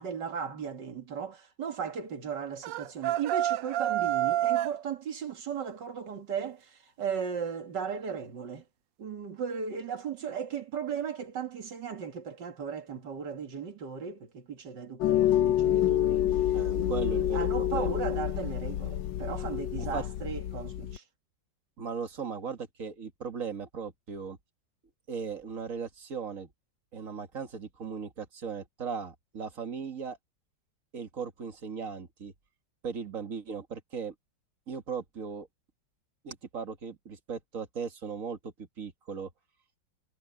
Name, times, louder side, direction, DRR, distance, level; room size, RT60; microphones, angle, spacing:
voice 1, 0.0-8.6 9.0-21.0, right 7 dB, 70° right, 2.6 m, -36 dB
sound 1, 2.6-4.8, right 13 dB, 85° right, 1.3 m, -28 dB
sound 2, 15.0-21.0, left 12 dB, 90° left, 1.4 m, -28 dB
voice 2, 16.5-18.0 19.8-20.0 21.8-24.4 25.1-26.5 26.9-30.2 30.9-32.3 32.8-34.1 34.7-35.5 36.2-39.3, right 6 dB, 45° right, 2.2 m, -38 dB
omnidirectional pair, 2.0 m